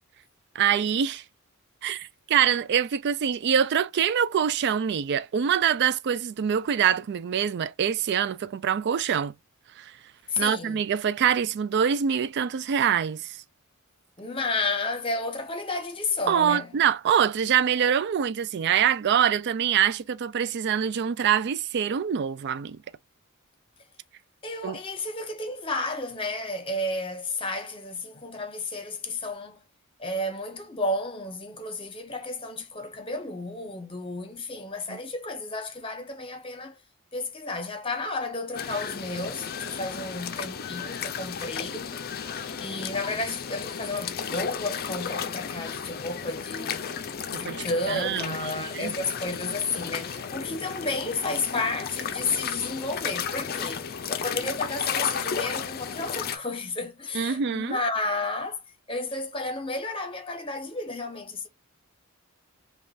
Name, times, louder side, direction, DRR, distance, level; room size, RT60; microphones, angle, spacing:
voice 1, 0.5-1.2 1.8-9.3 9.8-10.0 10.4-13.4 16.3-22.8 24.6-24.8 34.9-35.0 47.4-48.9 57.1-57.8, right 8 dB, 50° right, 0.3 m, -25 dB
voice 2, 10.3-10.8 14.2-16.7 24.4-29.6 30.0-36.8 37.1-41.9 42.6-46.9 47.3-58.6 58.9-61.5, left 2 dB, 25° left, 1.0 m, -32 dB
sound 1, 38.5-56.4, left 7 dB, 45° left, 0.5 m, -34 dB
5.4 x 2.3 x 2.4 m
head